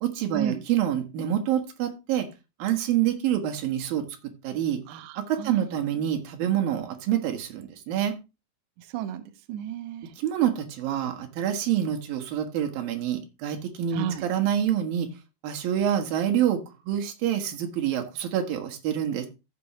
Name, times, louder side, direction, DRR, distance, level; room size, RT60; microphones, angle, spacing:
voice 1, 0.0-2.3 2.6-4.0 4.4-4.8 5.3-8.1 10.2-15.1 15.4-16.6 16.9-19.3, right 10 dB, 65° right, 5 dB, 2.8 m, -26 dB
voice 2, 4.9-5.7 8.8-10.1 13.9-14.2, right 10 dB, 85° right, 7 dB, 1.7 m, -33 dB
14.5 x 7.0 x 3.0 m, 0.27 s
omnidirectional pair, 4.9 m